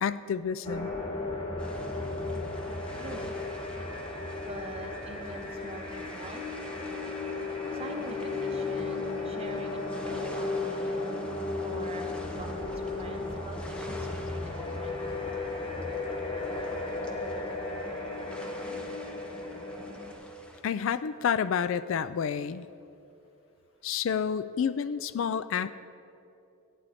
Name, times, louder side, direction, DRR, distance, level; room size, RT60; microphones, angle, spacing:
voice 1, 0.0-0.9 20.6-22.7 23.8-25.7, left 7 dB, 65° left, 14 dB, 0.3 m, -29 dB
sound 1, 0.6-20.1, left 3 dB, 25° left, 1.3 m, -35 dB
sound 2, 1.6-20.6, equal, 5° left, 0.7 m, -50 dB
voice 2, 2.9-3.3 4.5-6.4 7.7-11.1 11.6-15.0, right 2 dB, 25° right, 4 dB, 0.9 m, -44 dB
15.0 x 9.2 x 4.2 m, 2.7 s
head